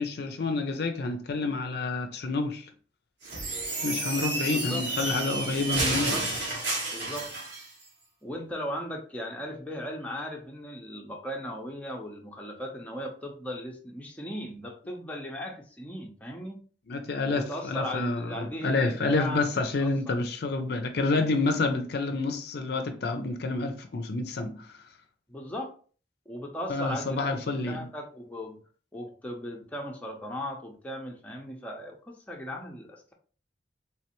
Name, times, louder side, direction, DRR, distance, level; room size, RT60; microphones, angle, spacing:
voice 1, 0.0-2.7 3.8-6.2 16.9-24.7 26.7-27.9, left 3 dB, 55° left, 0.5 m, -29 dB
sound 1, 3.2-7.7, right 2 dB, 70° right, 1.4 m, -31 dB
voice 2, 4.5-4.8 5.9-6.3 6.9-7.3 8.2-16.6 17.3-20.2 25.3-25.7 26.3-27.4 27.7-28.6 28.9-33.1, equal, 10° left, 0.6 m, -37 dB
3.3 x 3.2 x 2.9 m
head